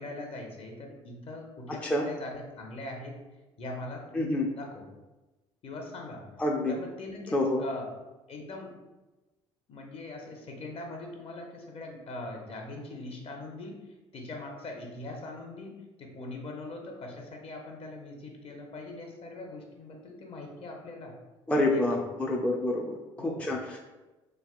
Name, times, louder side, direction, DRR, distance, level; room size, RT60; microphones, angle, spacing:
voice 1, 0.0-3.1 3.6-4.8 5.6-6.2 6.7-7.9 8.3-8.7 9.7-13.7 14.1-21.1 21.7-22.0 23.2-23.5, left 2 dB, 45° left, 1 dB, 0.8 m, -41 dB
voice 2, 1.7-2.1 4.2-4.5 6.4-6.7 7.3-7.6 21.5-23.8, left 1 dB, 10° left, 0 dB, 0.4 m, -28 dB
3.3 x 2.8 x 2.4 m, 1.1 s
hypercardioid pair, 70°, 14 cm